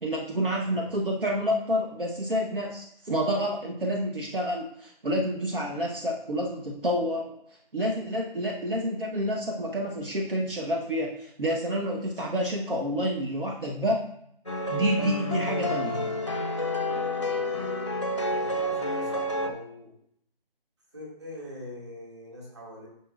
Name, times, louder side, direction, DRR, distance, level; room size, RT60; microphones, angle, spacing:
voice 1, 0.0-7.4 7.7-14.1 14.7-16.1, equal, 65° right, -1 dB, 1.3 m, -28 dB
sound 1, 14.5-19.5, left 1 dB, 30° left, 0.7 m, -29 dB
voice 2, 18.4-19.9 20.9-22.9, left 1 dB, 30° right, -4 dB, 2.3 m, -42 dB
9.8 x 5.7 x 2.5 m, 0.71 s
figure-of-eight pair, 180°, 29 cm